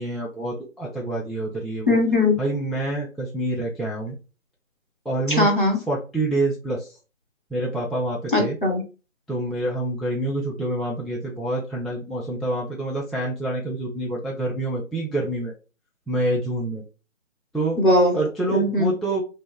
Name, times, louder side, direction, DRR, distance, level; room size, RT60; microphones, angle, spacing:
voice 1, 0.0-2.0 2.4-4.2 5.0-5.5 5.9-6.9 7.5-8.6 9.3-15.5 16.1-16.8 17.5-17.8 18.1-19.2, right 2 dB, ahead, -5 dB, 0.4 m, -27 dB
voice 2, 1.9-2.4 5.3-5.8 8.3-8.8 17.8-18.2 18.5-18.9, left 1 dB, 40° left, 0 dB, 0.9 m, -19 dB
2.9 x 2.1 x 3.2 m, 0.33 s
figure-of-eight pair, 180°, 41 cm